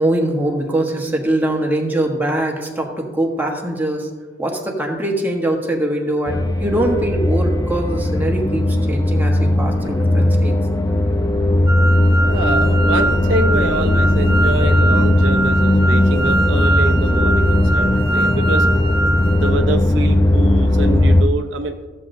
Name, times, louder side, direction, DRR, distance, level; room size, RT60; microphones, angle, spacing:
voice 1, 0.0-4.1 4.4-10.6, right 1 dB, 10° right, 0 dB, 1.1 m, -22 dB
sound 1, 6.3-21.2, left 1 dB, 20° left, 0.5 m, -17 dB
sound 2, 11.7-19.5, right 2 dB, 30° right, 1.2 m, -23 dB
voice 2, 12.2-18.7 19.4-21.7, right 2 dB, 70° right, 5 dB, 0.6 m, -25 dB
14.0 x 7.6 x 2.6 m, 1.3 s
head